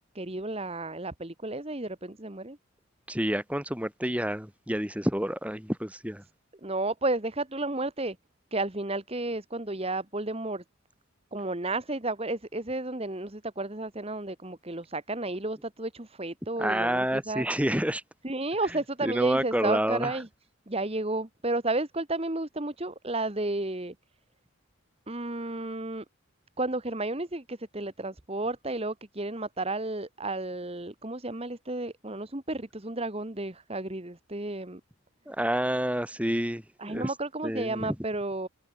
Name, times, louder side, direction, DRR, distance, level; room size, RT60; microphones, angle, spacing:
voice 1, 0.1-2.6 6.6-8.2 8.5-10.6 11.3-17.5 18.2-20.3 20.7-23.9 25.1-26.0 26.6-34.8 36.8-38.5, right 2 dB, 25° right, 1.4 m, -32 dB
voice 2, 3.1-6.2 16.6-18.0 19.0-20.2 35.3-37.1 37.4-38.0, equal, 5° right, 3.8 m, -29 dB
head